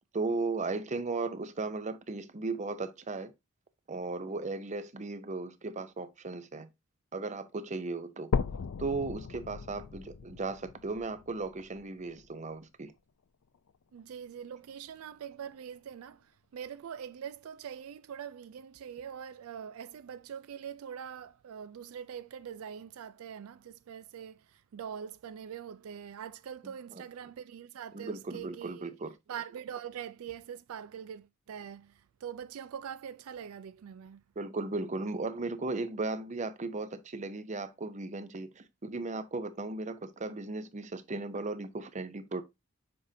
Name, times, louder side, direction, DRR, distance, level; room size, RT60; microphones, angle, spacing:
voice 1, 0.1-3.3 3.9-6.7 7.1-8.3 8.8-12.9 27.9-29.1 34.4-42.4, right 3 dB, 35° right, 0.7 m, -36 dB
sound 1, 8.3-12.3 12.9-13.0 13.5-13.6 14.0-14.1 14.9-15.0, left 5 dB, 75° left, 0.5 m, -36 dB
voice 2, 13.9-28.9 29.3-34.2, right 8 dB, 90° right, 0.4 m, -43 dB
6.9 x 5.0 x 2.7 m
head